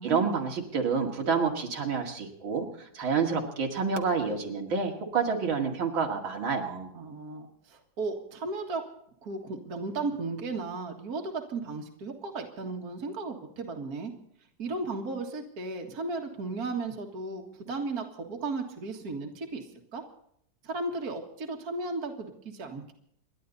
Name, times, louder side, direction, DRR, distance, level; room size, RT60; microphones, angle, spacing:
voice 1, 0.0-6.9, right 5 dB, 90° right, 1 dB, 3.0 m, -28 dB
voice 2, 6.9-8.8 9.2-14.1 14.6-19.7 19.9-20.0 20.6-22.9, right 3 dB, 50° right, 3 dB, 2.3 m, -35 dB
28.5 x 11.5 x 4.1 m, 0.71 s
omnidirectional pair, 2.1 m